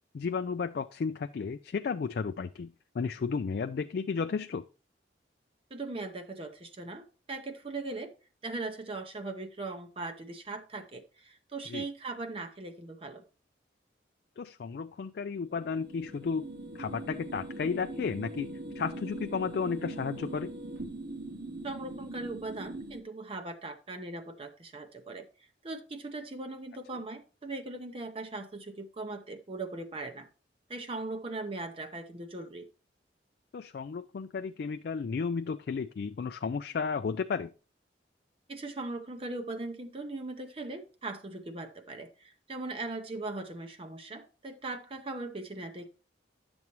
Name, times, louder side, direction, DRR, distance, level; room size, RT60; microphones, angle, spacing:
voice 1, 0.1-4.7 11.7-11.9 14.4-16.5 16.7-20.5 33.5-37.5, left 5 dB, 55° left, 0.3 m, -33 dB
voice 2, 5.7-8.1 8.4-13.2 21.6-25.3 25.6-30.3 30.7-32.7 38.5-45.9, right 2 dB, 30° right, 0.7 m, -39 dB
sound 1, 15.4-23.0, right 2 dB, 55° right, 1.1 m, -41 dB
10.5 x 7.0 x 3.1 m
head